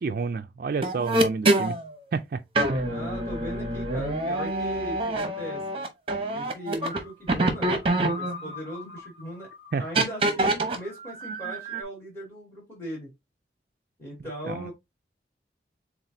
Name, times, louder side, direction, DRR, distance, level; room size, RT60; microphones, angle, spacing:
voice 1, 0.0-1.8 2.1-2.4 2.7-2.8 9.7-9.8 14.4-14.7, right 4 dB, 50° right, 0.3 m, -29 dB
sound 1, 0.8-1.8 2.6-7.0 7.3-9.0 10.0-10.8 11.2-11.8, right 2 dB, 30° right, 0.8 m, -26 dB
voice 2, 2.8-5.6 6.3-7.8 8.1-9.5 9.8-13.1 14.0-14.7, equal, 15° left, 2.3 m, -38 dB
7.2 x 2.4 x 2.6 m
head